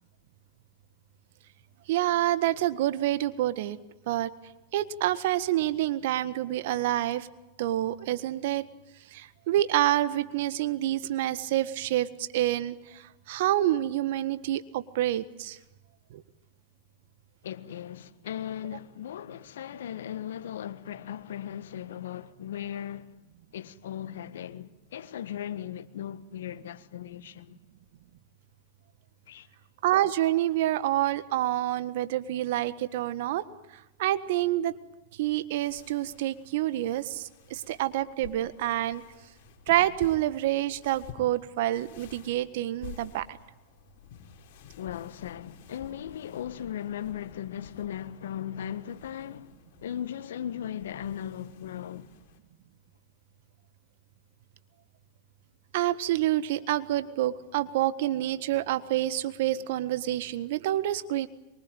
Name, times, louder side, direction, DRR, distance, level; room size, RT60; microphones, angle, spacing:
voice 1, 1.9-3.8 4.1-4.3 4.7-7.3 7.6-8.6 9.1-15.6 16.1-16.2 29.8-33.4 34.0-34.8 35.2-39.0 39.7-43.4 55.7-61.3, right 14 dB, 65° right, 1.5 m, -27 dB
voice 2, 17.4-23.1 23.5-27.6 29.3-29.5 44.8-49.5 49.8-52.1, left 10 dB, 75° left, 1.4 m, -37 dB
sound 1, 35.6-52.4, left 8 dB, 55° left, 4.9 m, -51 dB
24.0 x 23.5 x 9.1 m
hypercardioid pair, 105°, 0 cm